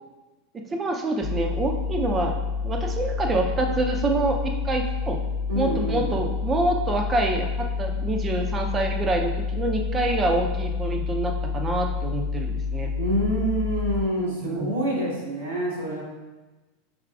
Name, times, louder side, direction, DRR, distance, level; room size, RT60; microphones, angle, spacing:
voice 1, 0.5-2.3 2.6-5.2 5.5-12.9 14.2-14.7, right 2 dB, 25° right, 3 dB, 0.7 m, -26 dB
sound 1, 1.2-14.0, left 5 dB, 30° left, 0.5 m, -28 dB
voice 2, 5.5-6.1 13.0-16.0, equal, 85° right, -6 dB, 1.5 m, -27 dB
5.4 x 3.5 x 2.4 m, 1.2 s
hypercardioid pair, 90°, 0 cm